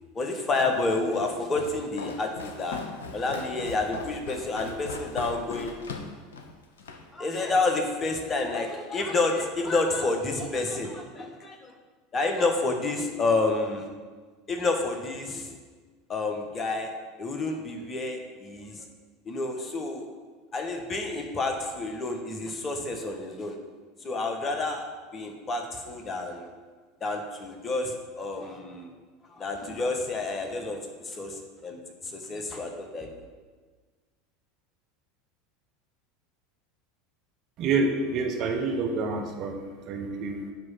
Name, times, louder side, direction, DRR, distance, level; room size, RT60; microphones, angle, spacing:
voice 1, 0.1-2.8 3.1-5.7 7.1-11.7 12.1-13.9 14.5-15.5 16.1-16.9 17.2-18.9 19.2-20.1 20.5-23.6 24.0-24.8 25.1-26.5 27.0-28.9 29.3-33.3, left 3 dB, 30° left, 4 dB, 1.3 m, -29 dB
Walk footsteps, 0.6-7.1, left 4 dB, 80° left, 0.7 m, -39 dB
voice 2, 37.6-39.5 39.9-40.4, right 3 dB, 50° right, 3 dB, 1.1 m, -27 dB
9.5 x 3.3 x 5.7 m, 1.4 s
hypercardioid pair, 80°, 0 cm